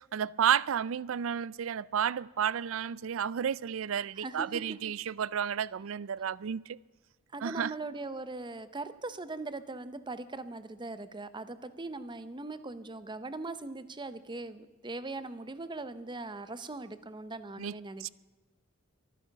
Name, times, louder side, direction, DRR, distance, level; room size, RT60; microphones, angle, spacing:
voice 1, 0.0-6.8 7.4-7.7 17.6-17.7 18.0-18.1, right 8 dB, 70° right, 0.4 m, -31 dB
voice 2, 4.2-4.6 7.3-18.1, right 2 dB, 25° right, 0.8 m, -40 dB
23.5 x 10.0 x 5.9 m
head